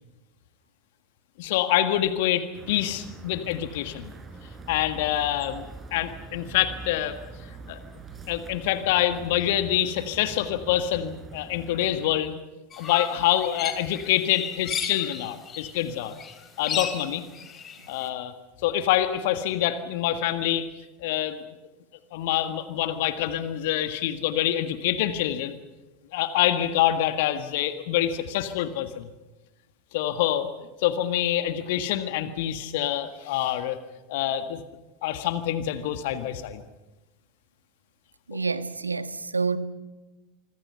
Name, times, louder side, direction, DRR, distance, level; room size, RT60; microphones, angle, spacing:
voice 1, 1.4-4.1 4.7-7.2 7.7-7.8 8.3-12.4 12.8-16.1 16.6-17.2 17.9-18.3 18.6-20.7 21.0-21.4 22.1-25.6 26.1-29.1 29.9-30.5 30.8-33.8 34.1-34.6 35.0-36.6, left 12 dB, 55° left, 1.6 m, -26 dB
sound 1, 2.5-12.2, right 3 dB, 20° right, 4.4 m, -44 dB
sound 2, 12.7-18.0, left 7 dB, 30° left, 3.6 m, -35 dB
voice 2, 38.3-39.6, right 4 dB, 85° right, 1.3 m, -28 dB
26.5 x 25.0 x 5.6 m
figure-of-eight pair, 80°, 0 cm